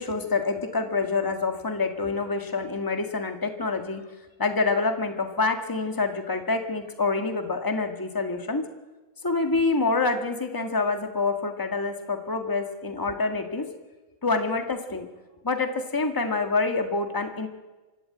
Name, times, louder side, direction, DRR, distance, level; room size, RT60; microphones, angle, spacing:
voice 1, 0.0-4.0 4.4-8.6 9.2-13.7 14.2-15.1 15.4-17.5, left 3 dB, 10° left, 5 dB, 1.7 m, -26 dB
25.5 x 12.5 x 9.1 m, 1.1 s
omnidirectional pair, 2.2 m